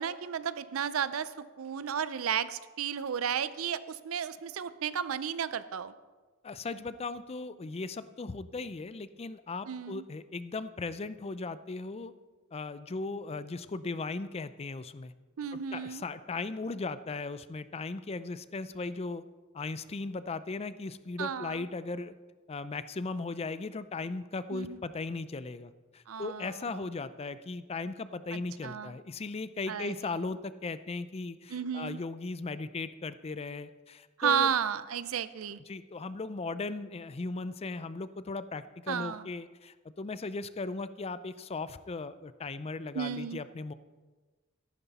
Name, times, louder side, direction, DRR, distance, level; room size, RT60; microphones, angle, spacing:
voice 1, 0.0-1.3 1.6-5.9 9.7-10.0 15.4-16.0 21.2-21.7 24.5-24.8 26.1-26.5 28.3-28.9 29.7-29.9 31.5-32.0 34.2-35.6 38.9-39.2 42.9-43.4, right 8 dB, 80° right, 15 dB, 0.5 m, -33 dB
voice 2, 6.4-12.1 12.5-15.1 15.7-19.2 19.5-22.1 22.5-34.5 35.7-43.7, left 3 dB, 30° left, 14 dB, 0.4 m, -37 dB
13.5 x 11.5 x 4.1 m, 1.3 s
head